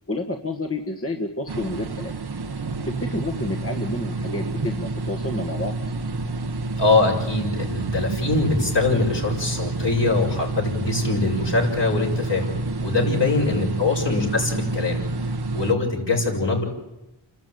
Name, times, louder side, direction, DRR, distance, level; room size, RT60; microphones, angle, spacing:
voice 1, 0.1-2.1 2.8-5.7 13.0-13.7, left 2 dB, 25° left, 3 dB, 1.7 m, -30 dB
sound 1, 1.5-15.7, right 2 dB, 50° right, 1.1 m, -28 dB
voice 2, 6.8-15.0 15.5-16.6, left 3 dB, 55° left, -1 dB, 6.6 m, -23 dB
29.5 x 12.5 x 9.3 m, 0.98 s
wide cardioid pair, 50°, 49 cm